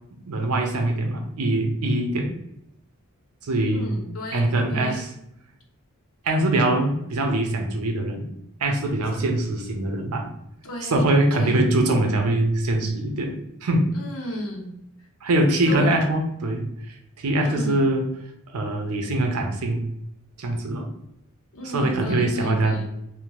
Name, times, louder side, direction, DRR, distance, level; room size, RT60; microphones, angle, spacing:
voice 1, 0.2-2.4 3.4-3.9 4.3-5.1 6.2-8.3 8.6-10.3 10.9-13.9 15.2-18.0 18.5-19.8 20.4-20.9 21.6-22.8, right 1 dB, 80° right, 3 dB, 0.6 m, -23 dB
voice 2, 3.7-5.0 9.1-9.2 10.6-11.0 11.3-11.7 13.9-14.7 15.0-15.1 15.6-16.0 17.4-17.9 21.5-22.9, left 1 dB, 70° left, 0 dB, 0.7 m, -34 dB
2.7 x 2.1 x 3.0 m, 0.79 s
head